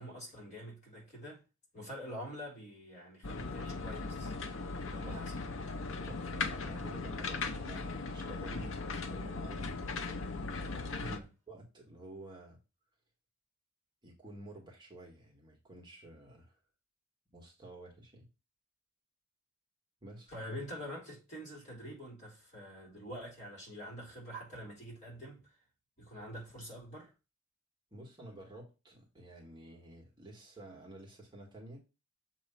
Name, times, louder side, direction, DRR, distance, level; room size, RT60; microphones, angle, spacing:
voice 1, 0.0-1.4 1.7-4.3 4.9-5.3 8.5-8.7 11.0-11.3 20.3-25.5 26.0-27.1, equal, 35° left, 3.5 m, -46 dB
sound 1, 3.2-11.2, left 3 dB, 65° left, 0.8 m, -38 dB
voice 2, 4.9-5.3 5.9-8.6 9.1-9.7 10.7-11.2 11.5-12.6 14.0-16.5 17.3-18.3 20.0-20.3 27.9-31.8, right 1 dB, 20° right, 1.6 m, -51 dB
7.1 x 3.0 x 5.6 m
head